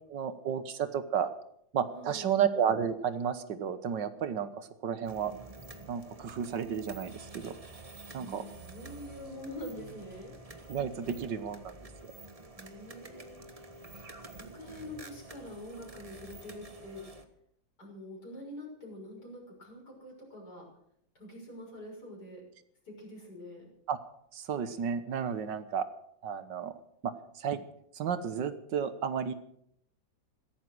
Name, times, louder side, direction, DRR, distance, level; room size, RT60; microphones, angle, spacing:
voice 1, 0.1-1.3 1.7-5.3 5.9-7.6 8.1-8.4 10.7-11.8 12.0-12.1 23.9-24.0 24.3-25.9 26.2-26.7 27.0-27.6 27.9-29.3, right 7 dB, 70° right, 12 dB, 1.7 m, -32 dB
voice 2, 1.9-2.3 8.2-10.3 12.5-13.9 14.2-17.0 17.8-20.6 21.2-22.5 22.9-23.7, left 1 dB, 55° left, -2 dB, 7.1 m, -45 dB
sound 1, 5.0-17.3, right 2 dB, 20° right, 1.3 m, -49 dB
16.0 x 14.0 x 6.2 m, 0.72 s
omnidirectional pair, 2.0 m